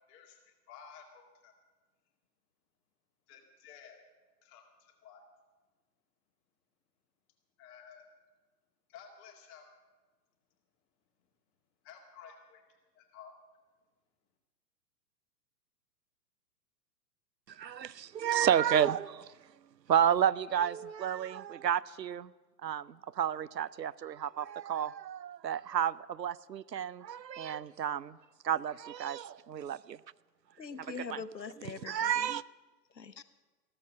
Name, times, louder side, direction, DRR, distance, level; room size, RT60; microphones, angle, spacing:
voice 1, 0.1-1.5 3.3-4.0 4.4-5.2 7.6-8.1 8.9-9.7 11.8-12.6 12.9-13.3, left 7 dB, 25° left, 2 dB, 2.1 m, -53 dB
voice 2, 17.5-19.3 19.9-22.3 22.6-28.2 28.4-30.0 31.1-31.2 31.9-32.4, right 9 dB, 80° right, 18 dB, 0.6 m, -31 dB
voice 3, 30.6-32.3 32.9-33.3, left 5 dB, 80° left, 11 dB, 1.0 m, -43 dB
14.5 x 13.5 x 6.3 m, 1.3 s
figure-of-eight pair, 115°, 50 cm